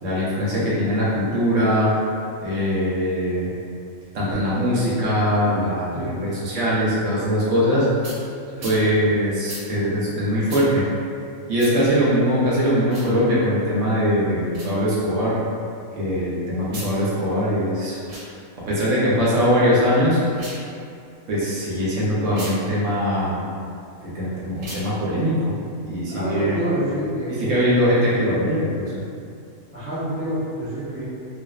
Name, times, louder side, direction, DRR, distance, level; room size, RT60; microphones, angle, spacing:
voice 1, 0.0-1.9 2.4-3.5 4.1-7.9 8.6-10.8 11.5-15.4 16.0-18.0 18.7-20.2 21.3-23.5 24.0-25.5 25.8-26.6 27.3-28.9, equal, 70° right, -8 dB, 0.9 m, -21 dB
sound 1, 8.0-8.2 8.6-8.8 9.5-9.6 10.5-10.6 11.6-11.7 12.8-13.1 14.5-14.7 16.6-16.9 18.0-18.3 20.3-20.6 22.3-22.5 24.5-24.9, right 1 dB, 85° right, 1.1 m, -36 dB
voice 2, 8.5-8.9 26.1-27.4 29.7-31.0, right 1 dB, 20° right, -12 dB, 0.4 m, -28 dB
2.5 x 2.3 x 2.2 m, 2.4 s
omnidirectional pair, 1.5 m